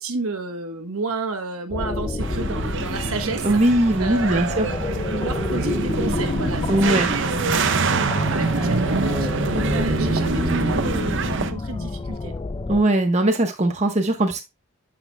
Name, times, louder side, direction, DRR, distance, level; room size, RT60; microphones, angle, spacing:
voice 1, 0.0-8.0 8.3-12.4, right 3 dB, 75° right, 1.1 m, -31 dB
sound 1, 1.7-12.8, left 3 dB, 20° left, 0.3 m, -28 dB
sound 2, 2.2-11.5, right 4 dB, 55° right, 0.6 m, -25 dB
voice 2, 3.4-4.7 6.7-7.1 12.7-14.4, right 1 dB, 30° right, 1.1 m, -20 dB
8.8 x 6.0 x 2.2 m
head